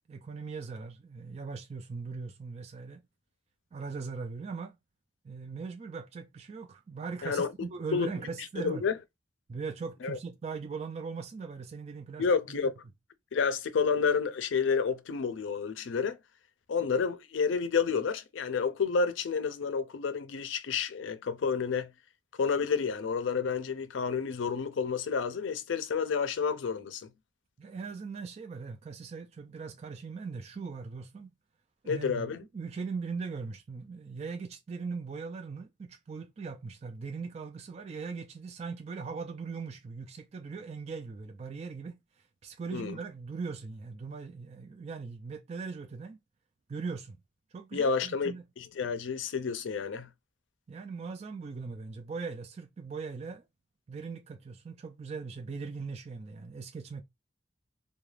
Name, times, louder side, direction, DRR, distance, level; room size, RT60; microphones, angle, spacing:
voice 1, 0.1-3.0 3.7-4.8 5.2-8.9 9.5-12.6 27.6-31.3 31.8-42.0 42.4-46.2 46.7-47.2 47.5-48.4 50.7-53.4 53.9-57.0, right 4 dB, 35° right, 0.3 m, -40 dB
voice 2, 8.6-8.9 10.0-10.2 12.2-12.8 13.3-16.2 16.7-21.9 22.4-27.1 31.9-32.4 42.7-43.0 47.7-50.1, left 5 dB, 85° left, 0.4 m, -30 dB
2.3 x 2.2 x 3.2 m
head